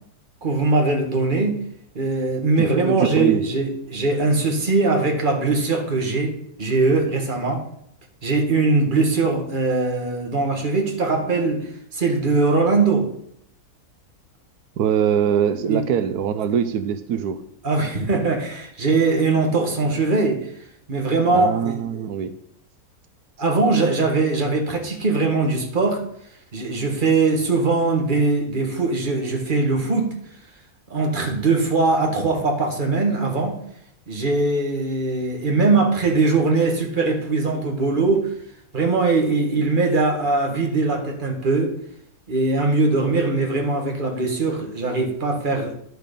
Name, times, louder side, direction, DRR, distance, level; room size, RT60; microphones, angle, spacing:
voice 1, 0.4-1.6 2.0-7.6 8.2-13.1 15.7-15.8 17.6-20.5 20.9-22.1 23.4-26.0 26.5-30.1 30.9-33.6 34.1-38.3 38.7-41.7 42.3-45.8, right 3 dB, 35° right, 2 dB, 1.8 m, -21 dB
voice 2, 2.6-3.4 14.8-17.4 21.3-22.3, right 8 dB, 85° right, 11 dB, 1.2 m, -23 dB
11.0 x 6.5 x 5.2 m, 0.70 s
omnidirectional pair, 1.6 m